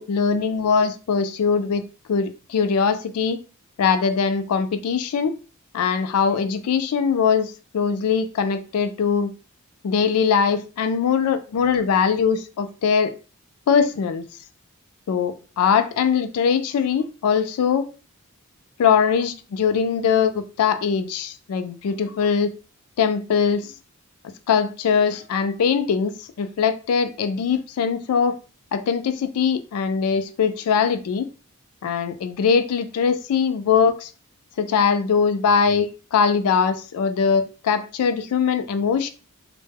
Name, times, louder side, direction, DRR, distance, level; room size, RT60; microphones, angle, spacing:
voice 1, 0.0-1.8 2.1-3.4 3.8-5.4 5.7-9.3 9.8-13.1 13.7-14.3 15.1-17.9 18.8-22.5 23.0-23.7 24.5-28.4 28.7-31.3 31.8-34.1 34.6-39.1, left 6 dB, 90° left, 10 dB, 0.3 m, -21 dB
2.1 x 2.1 x 3.3 m, 0.34 s
head